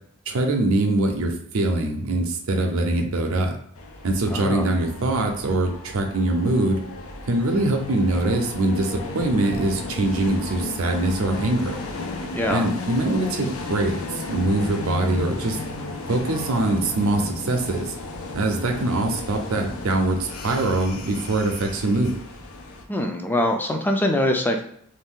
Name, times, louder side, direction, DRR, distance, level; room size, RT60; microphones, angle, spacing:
voice 1, 0.3-3.5 4.0-6.8 7.3-11.8 12.5-15.6 16.1-17.9 18.3-22.2, right 2 dB, 85° right, 3 dB, 0.5 m, -23 dB
sound 1, 3.8-22.8, left 3 dB, 90° left, 0.5 m, -34 dB
voice 2, 4.3-4.7 12.3-12.7 22.9-24.6, left 1 dB, 10° left, 3 dB, 0.3 m, -23 dB
2.6 x 2.2 x 3.6 m, 0.68 s
head